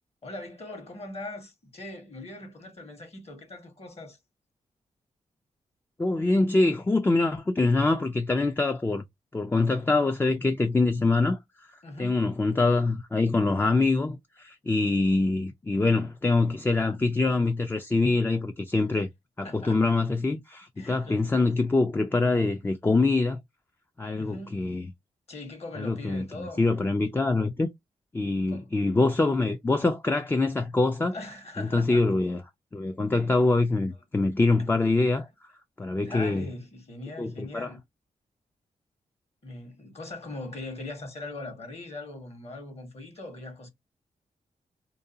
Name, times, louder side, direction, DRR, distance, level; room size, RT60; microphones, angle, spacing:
voice 1, 0.2-4.2 11.8-12.3 19.4-19.9 20.8-21.3 24.2-24.8 25.3-26.7 28.5-28.7 31.1-32.0 36.0-37.8 39.4-43.7, left 2 dB, 45° left, 1.2 m, -41 dB
voice 2, 6.0-9.0 9.3-11.4 12.0-19.1 19.4-23.4 24.0-24.8 25.8-27.7 28.1-31.2 31.6-32.4 32.7-35.3 35.8-36.5 37.2-37.7, left 3 dB, 15° left, 0.3 m, -24 dB
2.5 x 2.2 x 2.6 m
cardioid pair, 70°, 14 cm